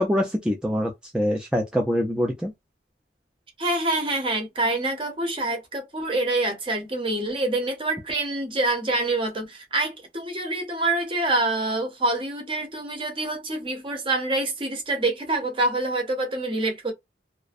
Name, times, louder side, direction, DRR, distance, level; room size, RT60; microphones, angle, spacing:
voice 1, 0.0-2.5, equal, 5° right, 0.3 m, -24 dB
voice 2, 3.6-16.9, right 2 dB, 30° right, 0.7 m, -26 dB
2.4 x 2.1 x 2.4 m
head